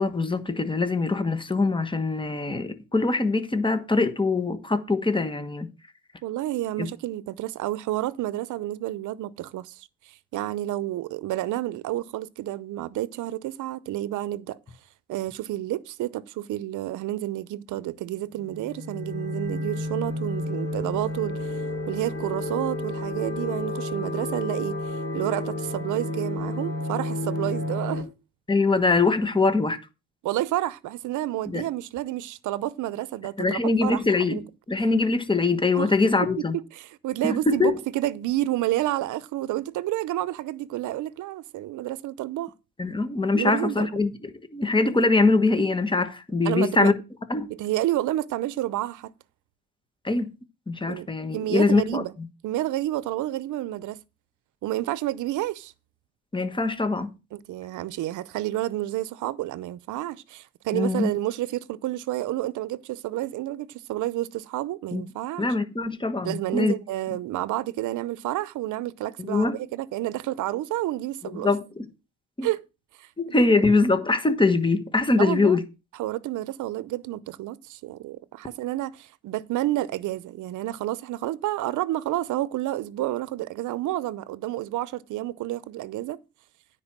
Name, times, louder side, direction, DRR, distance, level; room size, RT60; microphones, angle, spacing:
voice 1, 0.0-5.7 6.8-6.9 28.5-29.8 31.5-31.6 33.4-34.4 34.7-36.6 37.2-37.8 42.8-46.9 47.3-47.5 50.0-50.3 50.7-52.0 56.3-57.1 60.7-61.1 64.9-65.0 65.4-66.7 69.2-69.6 71.4-71.8 72.4-72.5 73.2-75.6, left 3 dB, 15° left, 1.3 m, -23 dB
voice 2, 6.2-14.6 15.1-21.6 21.9-28.0 30.2-34.0 34.3-34.4 35.7-35.9 36.5-42.5 43.3-43.9 46.4-46.9 47.5-49.1 50.9-51.1 51.3-52.1 52.4-54.0 54.6-55.7 57.3-65.5 66.2-71.5 72.4-72.6 73.0-73.1 73.4-73.7 75.2-75.6 76.0-86.2, right 15 dB, 80° right, 0.7 m, -30 dB
sound 1, 18.4-28.0, left 2 dB, 35° left, 3.0 m, -31 dB
9.8 x 4.5 x 7.4 m
cardioid pair, 90°, 30 cm